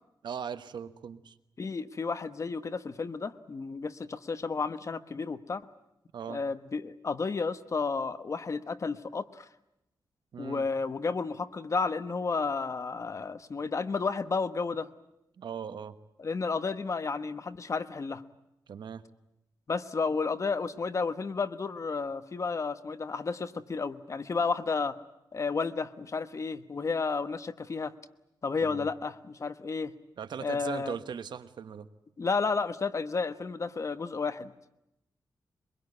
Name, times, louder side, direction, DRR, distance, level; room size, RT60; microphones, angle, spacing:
voice 1, 0.2-1.4 6.1-6.4 10.3-10.7 15.4-15.9 18.7-19.0 28.6-28.9 30.2-31.9, right 7 dB, 80° right, 11 dB, 1.2 m, -39 dB
voice 2, 1.6-5.6 6.3-9.5 10.4-14.9 16.2-18.2 19.7-25.0 25.3-27.9 28.4-29.9 30.4-30.9 32.2-34.5, left 4 dB, 40° left, 12 dB, 1.1 m, -32 dB
23.5 x 22.5 x 9.6 m, 0.86 s
wide cardioid pair, 110°, 8 cm